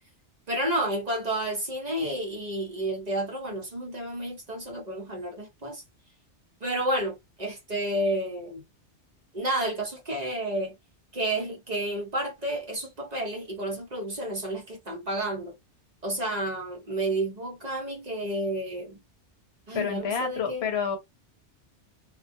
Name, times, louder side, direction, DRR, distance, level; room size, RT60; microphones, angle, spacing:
voice 1, 0.5-5.8 6.6-8.6 9.3-10.7 11.1-15.6 16.0-19.0 19.7-20.7, right 1 dB, 45° right, 0.7 m, -31 dB
voice 2, 19.7-21.0, left 6 dB, 70° left, 0.8 m, -29 dB
2.2 x 2.2 x 2.5 m
omnidirectional pair, 1.2 m